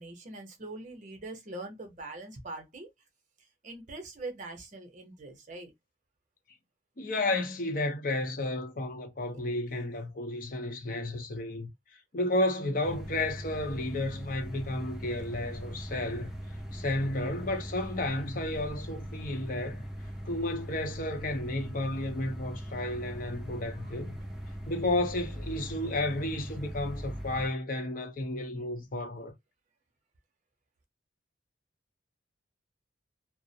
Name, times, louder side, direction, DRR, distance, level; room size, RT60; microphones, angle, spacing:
voice 1, 0.0-2.9 3.6-5.7 9.3-9.4 23.8-23.9, right 2 dB, 40° right, 0.7 m, -43 dB
voice 2, 7.0-11.7 12.1-16.3 16.7-19.8 20.2-24.1 24.7-29.3, left 1 dB, 50° left, 0.6 m, -32 dB
sound 1, 12.8-27.5, equal, ahead, 0.5 m, -40 dB
2.4 x 2.0 x 2.6 m
head